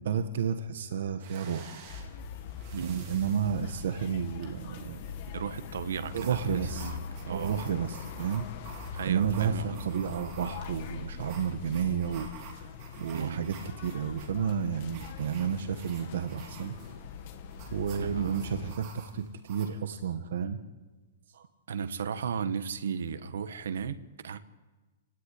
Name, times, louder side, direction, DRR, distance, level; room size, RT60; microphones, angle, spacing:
voice 1, 0.0-1.8 2.8-5.0 6.1-6.9 7.3-8.4 9.0-12.3 12.5-12.7 13.0-16.7 17.7-20.6 21.3-21.4, right 7 dB, 60° right, 8 dB, 1.6 m, -31 dB
sound 1, 1.2-19.7, right 6 dB, 30° right, 3.8 m, -51 dB
sound 2, 1.9-18.8, left 6 dB, 35° left, 1.8 m, -42 dB
voice 2, 2.7-3.0 5.3-7.0 7.3-7.5 8.9-10.0 13.1-13.5 17.9-18.4 21.7-24.4, right 6 dB, 80° right, 11 dB, 1.5 m, -35 dB
29.5 x 17.5 x 10.0 m, 1.2 s
hypercardioid pair, 180°, 0 cm